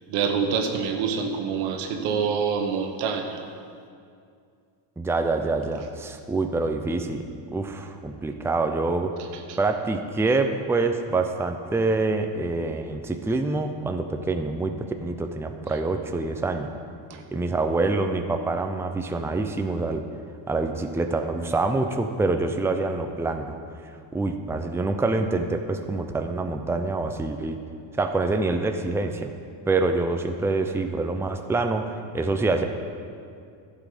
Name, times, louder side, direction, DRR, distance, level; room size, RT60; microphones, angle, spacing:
voice 1, 0.1-3.4 9.5-9.6, right 6 dB, 85° right, 4 dB, 1.4 m, -26 dB
voice 2, 5.0-7.3 7.5-9.1 9.6-16.7 17.3-20.0 20.5-23.5 23.8-27.6 28.0-29.3 29.7-31.8 32.1-32.7, right 3 dB, 5° right, 5 dB, 0.6 m, -26 dB
12.0 x 7.6 x 5.1 m, 2.3 s
supercardioid pair, 95°, 47 cm